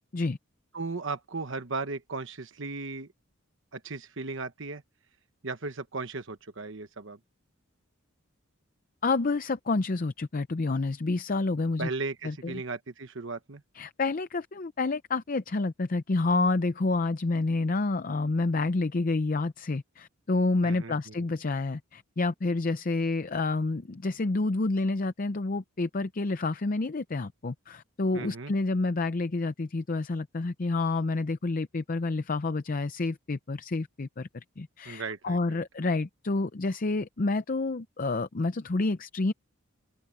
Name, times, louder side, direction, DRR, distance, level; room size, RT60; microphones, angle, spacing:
voice 1, 0.7-3.1 3.7-4.8 5.4-7.2 11.8-13.6 20.6-21.2 28.1-28.5 34.8-35.6, right 3 dB, 60° right, 1.1 m, -36 dB
voice 2, 9.0-11.9 12.2-12.6 13.8-39.3, left 3 dB, 40° left, 0.6 m, -29 dB
head